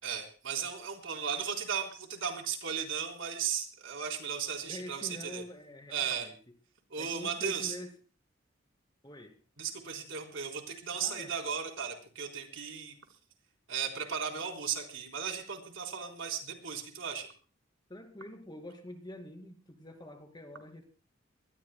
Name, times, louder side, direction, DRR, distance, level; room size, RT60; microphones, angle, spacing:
voice 1, 0.0-5.4 5.9-6.3 6.9-7.8 9.6-12.9 13.7-17.3, right 7 dB, 80° right, 2 dB, 3.9 m, -36 dB
voice 2, 4.7-6.3 7.0-7.9 9.0-9.3 11.0-11.3 17.9-20.8, left 1 dB, 20° left, 4 dB, 2.5 m, -46 dB
24.5 x 20.0 x 2.2 m, 0.37 s
head